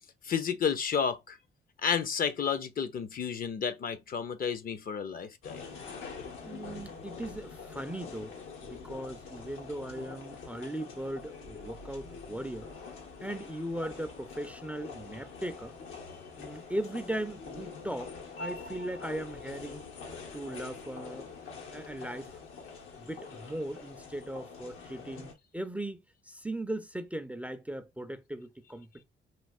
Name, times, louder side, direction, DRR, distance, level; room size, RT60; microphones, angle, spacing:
voice 1, 0.2-1.4 1.8-5.6, left 7 dB, 45° left, 0.6 m, -31 dB
sound 1, 5.4-25.3, left 4 dB, 90° left, 1.1 m, -45 dB
voice 2, 6.4-8.3 8.6-12.7 13.2-15.8 16.4-19.8 20.3-21.4 21.7-22.4 23.0-29.0, right 1 dB, 5° right, 0.4 m, -38 dB
3.2 x 2.8 x 2.4 m
cardioid pair, 90°, 20 cm